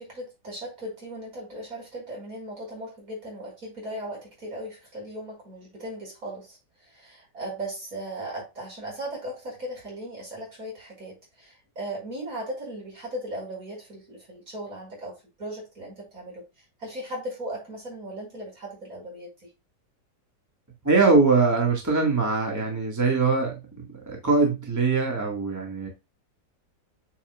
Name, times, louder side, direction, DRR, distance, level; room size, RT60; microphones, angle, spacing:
voice 1, 0.0-16.4 16.8-19.5, right 1 dB, 50° right, 5.6 m, -37 dB
voice 2, 20.8-25.9, right 3 dB, 10° right, 1.8 m, -22 dB
8.7 x 5.7 x 2.4 m
omnidirectional pair, 1.8 m